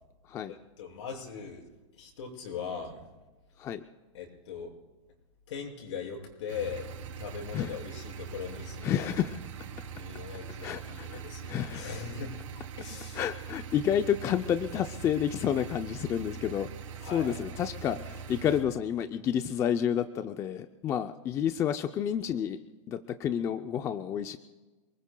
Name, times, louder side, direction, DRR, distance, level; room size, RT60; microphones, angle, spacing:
voice 1, 0.5-1.6 2.0-3.0 4.1-4.7 5.5-6.9 7.2-9.1 9.9-12.3 12.8-13.2 17.0-17.4, left 6 dB, 70° left, -1 dB, 6.3 m, -40 dB
sound 1, 6.5-18.6, right 6 dB, 85° right, 3.7 m, -42 dB
voice 2, 8.8-9.4 10.6-11.9 13.1-16.7 17.0-22.6 22.9-24.4, left 9 dB, 20° left, 9 dB, 0.4 m, -30 dB
28.0 x 20.5 x 2.3 m, 1.2 s
supercardioid pair, 160°, 16 cm